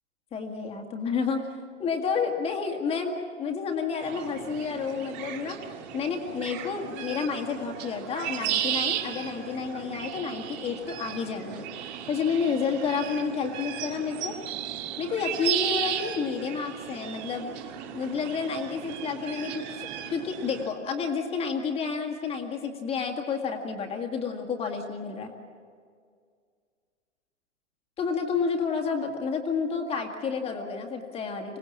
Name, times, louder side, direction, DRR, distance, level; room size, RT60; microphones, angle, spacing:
voice 1, 0.3-1.4 1.8-5.6 5.9-14.4 15.0-17.5 17.9-25.3 28.0-31.6, left 5 dB, 15° left, 3 dB, 2.0 m, -30 dB
sound 1, 4.0-20.7, right 10 dB, 35° right, 2.0 m, -35 dB
26.0 x 18.0 x 7.4 m, 2.1 s
hypercardioid pair, 140°, 37 cm